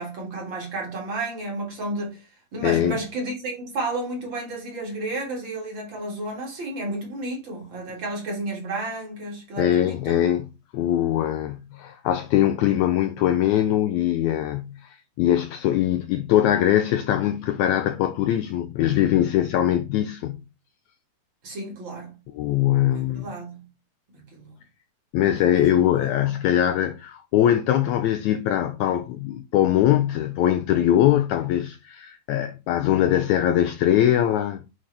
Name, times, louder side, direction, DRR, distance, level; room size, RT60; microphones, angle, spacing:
voice 1, 0.0-10.2 21.4-22.2 22.9-23.7 24.1-24.5 25.5-26.2, right 2 dB, 40° right, 2.3 m, -32 dB
voice 2, 2.6-3.0 9.6-10.5 10.7-20.4 22.3-23.3 25.1-34.6, left 12 dB, 85° left, 1.6 m, -22 dB
8.6 x 3.9 x 3.3 m
omnidirectional pair, 3.9 m